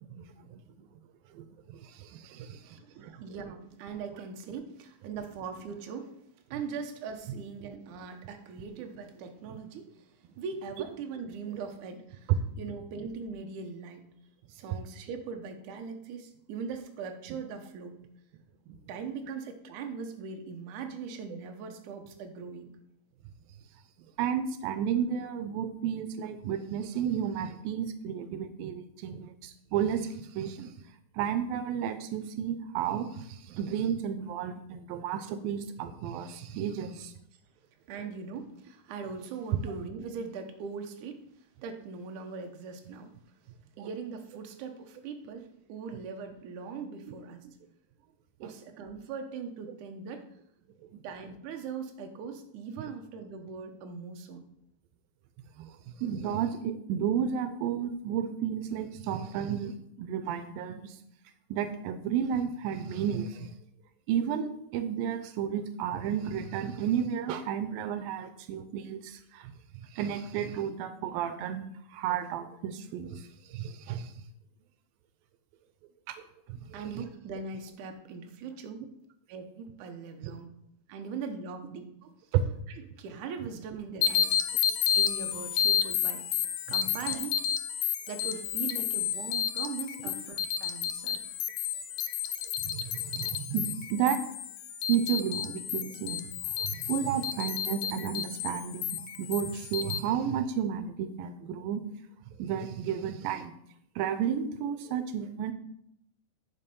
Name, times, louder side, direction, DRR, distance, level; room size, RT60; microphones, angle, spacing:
voice 1, 0.5-0.9 1.3-2.6 3.0-3.2 18.7-18.8 24.2-30.7 31.2-37.1 43.8-43.9 48.4-48.5 50.9-51.0 55.6-55.7 56.0-59.7 60.0-61.0 61.5-63.5 64.1-69.5 69.9-71.6 71.9-74.1 76.1-76.2 76.5-76.8 80.2-80.3 82.3-82.4 92.6-94.2 94.9-96.2 96.6-101.8 102.4-103.5 104.0-105.5, right 8 dB, 90° right, 10 dB, 2.4 m, -32 dB
voice 2, 2.4-6.2 6.5-14.1 14.5-18.0 18.9-22.8 37.9-41.2 41.6-43.1 43.8-47.5 48.4-50.2 51.0-54.4 76.7-78.8 79.3-80.5 80.9-82.1 82.7-84.4 84.8-86.4 86.7-87.3 88.1-91.3, right 5 dB, 70° right, 4 dB, 2.3 m, -40 dB
sound 1, 84.0-100.0, left 9 dB, 80° left, 1.6 m, -31 dB
9.9 x 5.2 x 5.4 m, 0.73 s
omnidirectional pair, 4.0 m